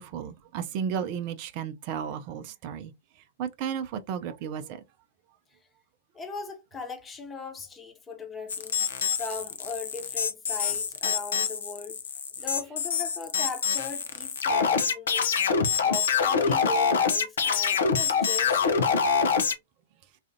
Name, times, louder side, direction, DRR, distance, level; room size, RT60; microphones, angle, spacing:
voice 1, 0.0-2.9 3.4-4.8, right 8 dB, 40° right, 0.5 m, -33 dB
voice 2, 6.1-8.8 9.1-12.0 12.4-15.4 15.8-19.3, left 4 dB, 15° left, 1.0 m, -39 dB
sound 1, 8.5-19.5, left 6 dB, 65° left, 0.6 m, -25 dB
4.0 x 2.4 x 2.6 m
figure-of-eight pair, 105°, 0 cm